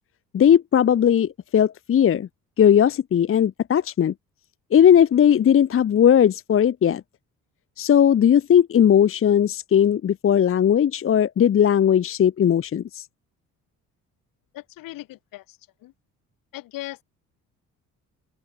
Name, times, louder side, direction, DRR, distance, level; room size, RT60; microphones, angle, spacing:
voice 1, 0.3-2.3 2.6-4.1 4.7-7.0 7.8-13.0, left 9 dB, 40° left, 0.8 m, -18 dB
voice 2, 14.5-15.9 16.5-17.0, left 16 dB, 80° left, 5.9 m, -38 dB
open air
supercardioid pair, 70°, 33 cm